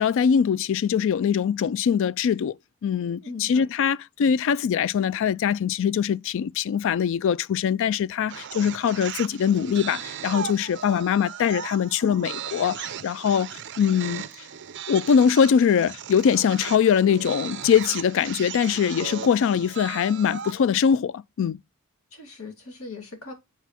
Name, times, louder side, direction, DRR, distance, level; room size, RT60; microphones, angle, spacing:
voice 1, 0.0-2.6 2.8-14.2 14.9-21.6, left 7 dB, 65° left, 0.3 m, -22 dB
voice 2, 3.2-3.7 22.1-23.3, left 3 dB, 80° left, 2.4 m, -39 dB
sound 1, 8.3-20.6, right 8 dB, 55° right, 0.6 m, -37 dB
8.2 x 4.0 x 4.3 m
head